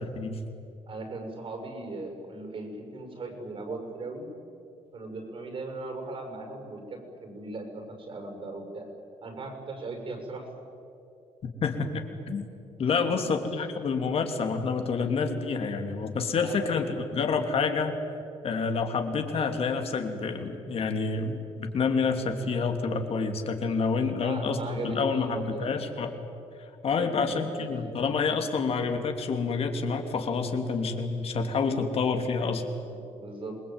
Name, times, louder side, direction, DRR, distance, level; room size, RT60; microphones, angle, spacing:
voice 1, 0.9-4.3 4.9-8.9 9.2-10.5 12.8-13.2 16.3-16.9 23.9-25.7 26.8-27.7 32.9-33.6, right 2 dB, 50° right, 4 dB, 6.9 m, -38 dB
voice 2, 11.6-12.4 12.8-17.9 18.4-26.1 26.8-32.6, left 4 dB, 55° left, 5 dB, 3.1 m, -28 dB
27.5 x 21.0 x 9.1 m, 2.7 s
cardioid pair, 110°, 12 cm